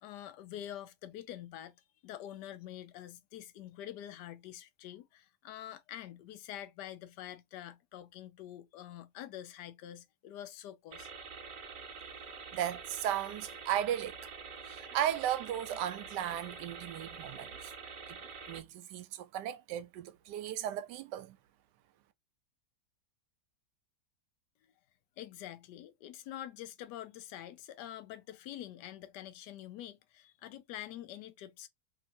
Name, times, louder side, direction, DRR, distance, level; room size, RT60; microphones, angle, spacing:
voice 1, 0.0-1.8 2.0-11.1 25.2-31.7, left 12 dB, 85° left, 1.2 m, -46 dB
sound 1, 10.9-18.6, right 5 dB, 65° right, 0.5 m, -46 dB
voice 2, 12.5-14.2 14.6-17.7 18.5-21.4, right 11 dB, 85° right, 1.2 m, -35 dB
3.0 x 2.8 x 2.6 m
omnidirectional pair, 1.8 m